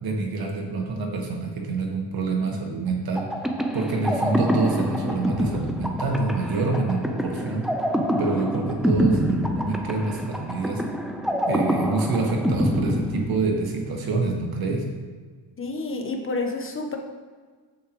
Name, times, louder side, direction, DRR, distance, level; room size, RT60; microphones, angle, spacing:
voice 1, 0.0-3.3 3.7-7.7 8.2-10.8 11.5-14.9, right 3 dB, 55° right, 2 dB, 1.5 m, -26 dB
sound 1, 3.2-13.8, equal, ahead, 0.7 m, -26 dB
voice 2, 15.6-17.0, left 3 dB, 30° left, 3 dB, 1.0 m, -29 dB
8.2 x 7.5 x 3.1 m, 1.5 s
cardioid pair, 100°, 42 cm